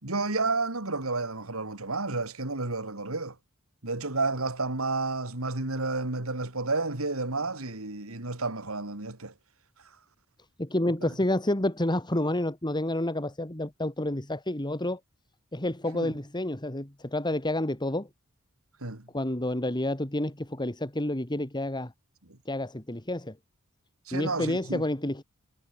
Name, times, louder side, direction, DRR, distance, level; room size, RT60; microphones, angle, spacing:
voice 1, 0.0-3.3 3.8-9.3 15.9-16.1 18.8-19.0 24.1-24.8, right 3 dB, 75° right, 3.2 m, -31 dB
voice 2, 10.6-15.0 15.5-18.1 19.1-21.9 22.5-23.3 24.1-25.2, left 1 dB, 20° left, 2.4 m, -29 dB
head